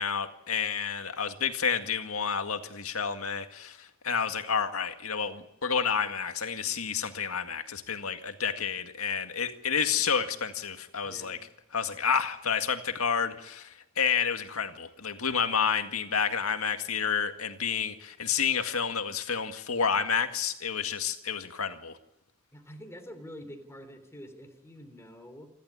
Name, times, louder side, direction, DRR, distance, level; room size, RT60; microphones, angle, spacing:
voice 1, 0.0-11.4 11.7-21.9, left 6 dB, 80° left, 7 dB, 2.0 m, -30 dB
voice 2, 11.0-11.4 22.5-25.5, equal, 15° left, 6 dB, 3.5 m, -46 dB
28.0 x 12.5 x 9.8 m, 0.90 s
head